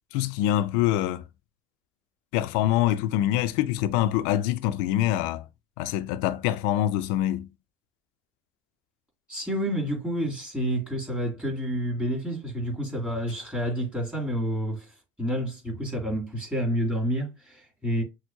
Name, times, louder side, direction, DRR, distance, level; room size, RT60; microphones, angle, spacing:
voice 1, 0.1-1.2 2.3-5.4 5.8-7.5, left 13 dB, 70° left, 0.5 m, -25 dB
voice 2, 9.3-14.9 15.2-18.0, equal, 10° right, 2.6 m, -29 dB
6.2 x 2.1 x 2.8 m
hypercardioid pair, 75°, 13 cm